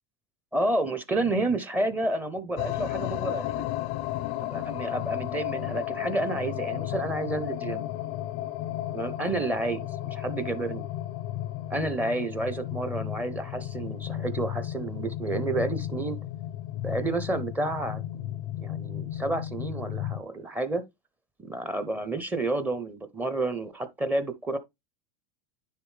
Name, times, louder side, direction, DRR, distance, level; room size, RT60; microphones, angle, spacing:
voice 1, 0.5-3.6 4.4-7.9 8.9-10.9 11.7-16.2 16.8-18.0 18.6-20.8 21.4-24.6, right 2 dB, 10° right, 0.7 m, -30 dB
sound 1, 2.6-20.2, left 13 dB, 50° left, 0.4 m, -34 dB
9.7 x 3.5 x 3.2 m
supercardioid pair, 140°, 13 cm